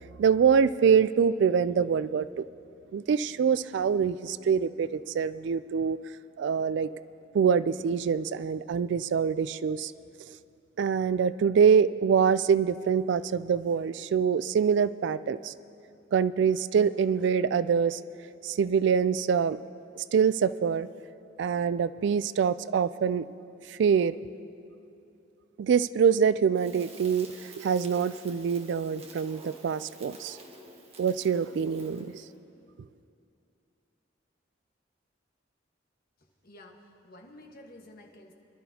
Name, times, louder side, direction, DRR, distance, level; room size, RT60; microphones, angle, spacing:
voice 1, 0.2-2.4 2.9-6.0 6.4-6.9 7.3-9.9 10.8-15.5 16.1-18.0 18.4-19.6 20.0-20.9 21.4-23.3 23.7-24.2 25.6-30.4 31.0-32.1, right 6 dB, 65° right, 16 dB, 0.3 m, -25 dB
Crackle, 26.5-32.2, right 2 dB, 30° right, 1.5 m, -50 dB
voice 2, 36.4-38.3, left 1 dB, 50° left, 2 dB, 1.3 m, -51 dB
26.0 x 12.0 x 2.8 m, 2.7 s
head